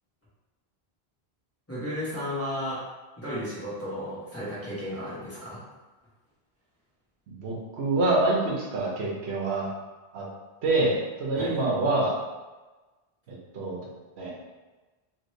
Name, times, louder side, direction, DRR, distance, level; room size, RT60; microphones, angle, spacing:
voice 1, 1.7-2.8 3.2-5.6 11.4-11.6, equal, 15° left, -11 dB, 1.1 m, -33 dB
voice 2, 7.3-9.7 10.1-10.2 10.6-12.1 13.3-13.8 14.2-14.3, right 2 dB, 85° right, -3 dB, 1.0 m, -26 dB
2.9 x 2.6 x 3.1 m, 1.2 s
omnidirectional pair, 1.1 m